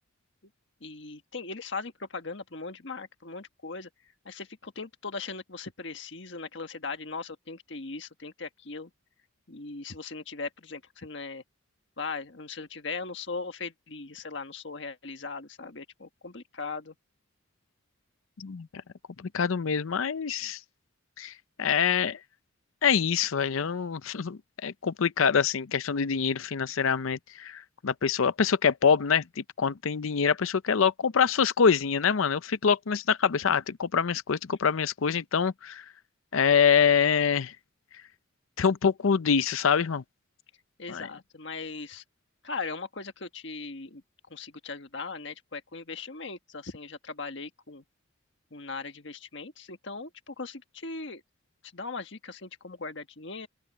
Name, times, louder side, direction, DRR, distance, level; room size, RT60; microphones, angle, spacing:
voice 1, 0.8-3.9 4.2-8.9 9.5-11.4 12.0-16.9 40.8-42.0 42.4-44.0 44.3-47.8 48.5-51.2 51.7-53.5, left 4 dB, 60° left, 1.5 m, -39 dB
voice 2, 19.3-20.6 21.2-21.3 21.6-22.2 22.8-29.2 29.6-35.8 36.3-37.5 38.6-40.0 40.9-41.1, left 6 dB, 75° left, 0.6 m, -25 dB
open air
head